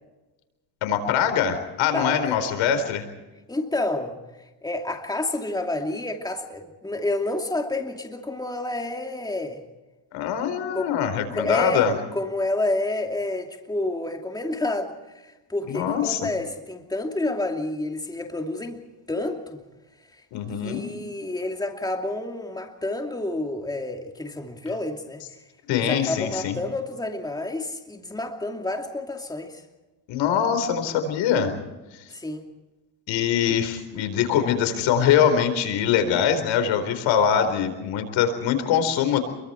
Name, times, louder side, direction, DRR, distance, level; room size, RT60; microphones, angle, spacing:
voice 1, 0.8-3.1 10.1-11.9 15.7-16.3 20.3-20.9 25.7-26.6 30.1-31.5 31.9-32.0 33.1-39.2, left 8 dB, 75° left, 9 dB, 4.5 m, -23 dB
voice 2, 1.9-2.4 3.5-4.1 4.6-9.6 10.7-10.9 11.3-11.9 12.1-14.9 15.5-19.6 20.6-25.2 25.7-29.6 32.1-32.4, left 2 dB, 10° left, 3 dB, 2.7 m, -29 dB
28.0 x 23.0 x 4.5 m, 1.1 s
cardioid pair, 105°, 45 cm